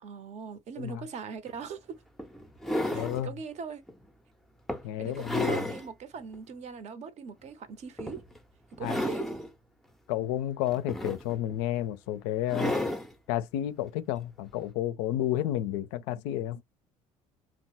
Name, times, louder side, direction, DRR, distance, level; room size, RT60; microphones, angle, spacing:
voice 1, 0.0-2.0 2.9-3.8 5.0-8.2 8.8-9.3, right 6 dB, 40° right, 0.7 m, -41 dB
sound 1, 1.5-1.6 2.2-3.2 3.9-4.1 4.7-5.9 6.3-6.4 8.0-8.4 8.7-9.5 10.7-11.6 12.5-13.1 14.5-14.6, left 1 dB, ahead, 0.5 m, -32 dB
voice 2, 2.9-3.3 4.8-5.6 8.8-9.0 10.1-12.7 13.3-16.6, left 12 dB, 60° left, 0.4 m, -31 dB
2.9 x 2.0 x 2.9 m
figure-of-eight pair, 55°, 18 cm